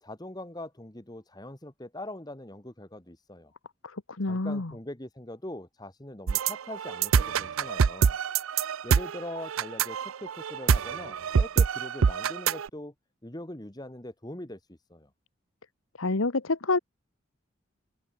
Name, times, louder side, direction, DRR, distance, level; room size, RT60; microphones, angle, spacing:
voice 1, 0.0-3.5 4.3-8.2 8.8-12.9 13.2-15.1, left 1 dB, 20° left, 1.5 m, -42 dB
voice 2, 3.8-4.7 16.0-16.8, left 3 dB, 90° left, 1.3 m, -28 dB
sound 1, 6.3-12.7, right 6 dB, 90° right, 0.5 m, -25 dB
head